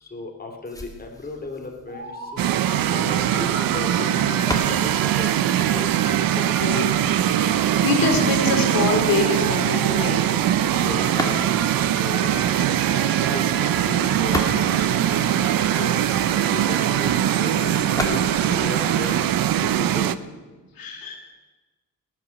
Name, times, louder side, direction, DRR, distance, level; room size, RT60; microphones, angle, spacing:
voice 1, 0.0-2.4 2.8-4.4 4.7-4.9 5.2-5.4 5.7-5.9 8.2-8.3 10.8-11.5 12.0-15.0 15.7-15.9 16.3-17.1 17.4-19.2 19.5-20.1, left 3 dB, 25° left, 2 dB, 2.5 m, -36 dB
sound 1, 0.7-6.6 11.0-11.9 13.9-15.8 17.8-19.8, left 1 dB, 10° left, 2.5 m, -35 dB
Motor vehicle (road) / Siren, 1.9-19.2, right 1 dB, 35° right, 5.9 m, -36 dB
sound 2, 2.4-20.1, right 11 dB, 90° right, 0.7 m, -21 dB
voice 2, 6.3-10.3 20.7-21.2, left 4 dB, 85° left, 3 dB, 2.6 m, -25 dB
18.5 x 9.4 x 7.0 m, 1.3 s
cardioid pair, 90°, 34 cm